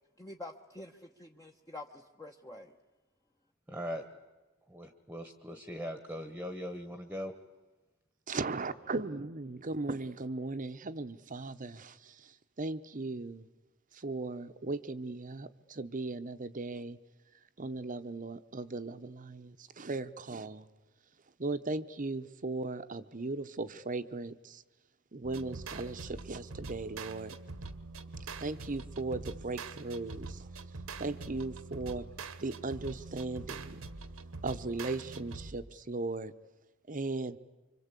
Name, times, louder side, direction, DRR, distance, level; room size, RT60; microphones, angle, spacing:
voice 1, 0.2-2.7, left 2 dB, 15° left, 2 dB, 1.0 m, -47 dB
voice 2, 3.7-4.1 4.7-7.3, equal, 5° right, 8 dB, 1.2 m, -40 dB
voice 3, 8.3-13.5 13.9-17.0 17.6-20.7 21.4-24.6 25.1-27.4 28.4-30.5 31.0-32.1 32.4-33.8 34.4-36.3 36.9-37.4, right 3 dB, 40° right, 12 dB, 0.9 m, -37 dB
sound 1, 25.2-35.7, right 3 dB, 75° right, 1.3 m, -44 dB
26.0 x 25.0 x 8.3 m, 1.2 s
head